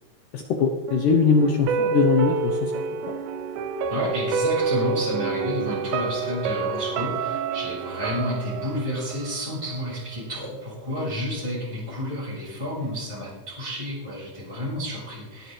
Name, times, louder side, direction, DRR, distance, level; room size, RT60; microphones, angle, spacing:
voice 1, 0.3-3.1, left 5 dB, 80° left, 3 dB, 1.8 m, -22 dB
sound 1, 0.9-9.9 10.2-10.3, right 5 dB, 85° right, 3.1 m, -28 dB
voice 2, 3.9-15.5, equal, 5° right, -8 dB, 4.6 m, -30 dB
20.0 x 9.4 x 3.3 m, 1.1 s
omnidirectional pair, 5.1 m